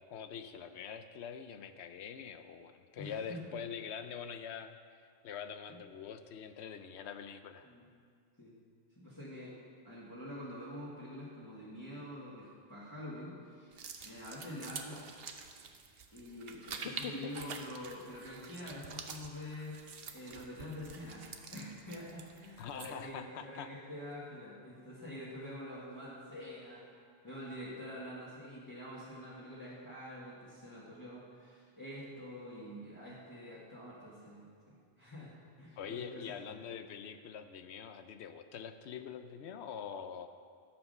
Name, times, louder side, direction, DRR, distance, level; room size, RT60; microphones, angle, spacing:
voice 1, 0.1-4.8 5.2-7.7 16.7-17.1 22.6-23.7 35.8-40.3, left 7 dB, 85° left, 9 dB, 0.9 m, -44 dB
voice 2, 3.0-3.4 5.7-5.8 7.6-7.9 8.4-8.5 8.9-9.6 9.8-13.8 14.0-15.2 16.1-19.8 20.1-21.3 21.5-26.9 27.2-36.6, left 1 dB, 20° left, -9 dB, 1.7 m, -46 dB
sound 1, 13.7-23.1, right 5 dB, 65° right, 1.0 m, -47 dB
11.5 x 7.1 x 5.5 m, 2.2 s
omnidirectional pair, 1.1 m